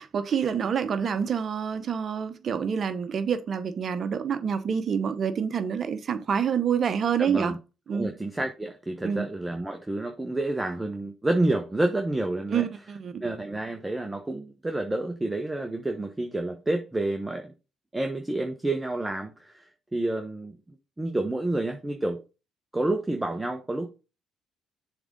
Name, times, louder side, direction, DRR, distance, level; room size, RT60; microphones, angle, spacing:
voice 1, 0.0-7.5 7.9-8.1 9.0-9.3 12.5-13.2, right 7 dB, 50° right, 0.9 m, -27 dB
voice 2, 7.2-7.6 7.9-12.7 13.2-17.5 17.9-20.6 21.0-22.2 22.7-23.9, right 2 dB, 15° right, 1.1 m, -29 dB
7.0 x 3.7 x 5.1 m
hypercardioid pair, 55°, 0 cm